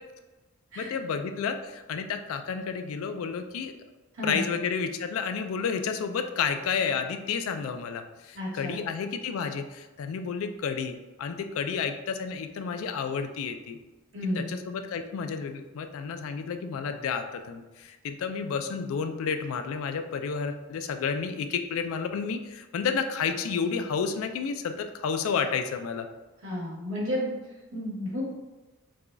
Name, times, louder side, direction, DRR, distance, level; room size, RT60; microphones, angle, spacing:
voice 1, 0.8-3.7 4.2-13.8 14.4-26.1, left 6 dB, 75° left, 7 dB, 0.3 m, -31 dB
voice 2, 8.3-8.8 14.1-14.5 26.4-27.3 27.7-28.2, left 1 dB, 65° right, -7 dB, 1.4 m, -32 dB
4.7 x 2.3 x 2.5 m, 1.2 s
head